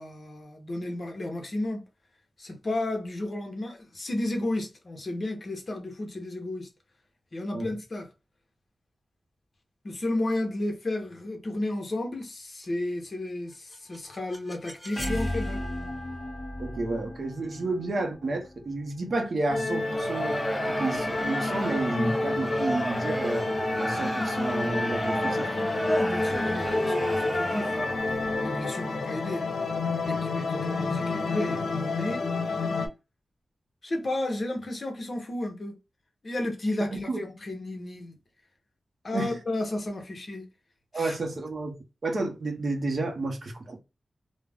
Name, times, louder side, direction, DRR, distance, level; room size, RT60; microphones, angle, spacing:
voice 1, 0.0-1.8 2.4-6.7 7.3-8.1 9.8-15.6 25.9-29.4 30.0-32.2 33.8-35.8 36.2-38.1 39.0-40.5 40.9-41.2, left 1 dB, 45° left, 0.8 m, -32 dB
sound 1, 13.5-19.4, left 1 dB, 15° left, 1.2 m, -36 dB
voice 2, 16.6-20.4 20.8-23.5 23.8-25.7 30.1-30.2 37.1-37.2 39.1-39.3 40.9-41.8 42.0-43.8, right 2 dB, 55° right, 0.6 m, -31 dB
sound 2, 19.5-32.9, left 3 dB, 90° left, 0.6 m, -29 dB
Crowd, 19.7-28.2, equal, 5° right, 0.5 m, -33 dB
2.3 x 2.1 x 3.3 m
wide cardioid pair, 115°, 0 cm